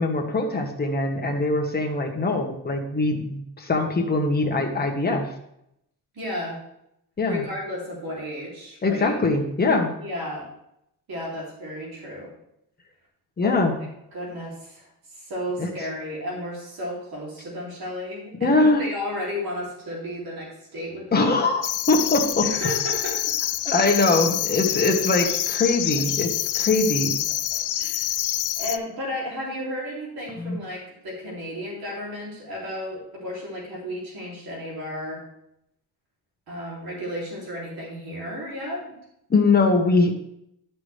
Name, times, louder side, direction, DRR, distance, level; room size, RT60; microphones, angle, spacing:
voice 1, 0.0-5.3 7.2-7.4 8.8-9.9 13.4-13.7 15.6-15.7 18.4-18.8 21.1-21.6 21.9-22.5 23.7-27.1 30.4-30.6 39.3-40.1, left 3 dB, 25° left, 1 dB, 1.3 m, -22 dB
voice 2, 6.1-6.6 7.3-9.2 10.0-10.5 11.1-12.3 13.4-21.4 22.4-23.3 23.7-23.8 27.5-28.1 28.6-35.2 36.5-38.9, left 1 dB, 60° right, -4 dB, 3.2 m, -33 dB
sound 1, 21.6-28.8, left 12 dB, 50° left, 0.4 m, -26 dB
11.5 x 6.0 x 3.3 m, 0.78 s
cardioid pair, 135°, 40 cm